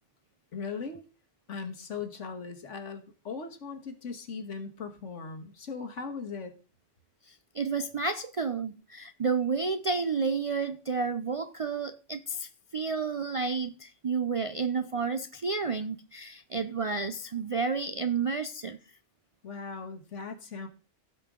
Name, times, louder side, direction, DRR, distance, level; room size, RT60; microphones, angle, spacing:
voice 1, 0.5-1.0 1.5-6.5 19.4-20.7, left 5 dB, 85° left, 1.7 m, -39 dB
voice 2, 7.3-18.8, right 5 dB, 60° right, 0.3 m, -31 dB
16.0 x 5.5 x 3.7 m
omnidirectional pair, 1.2 m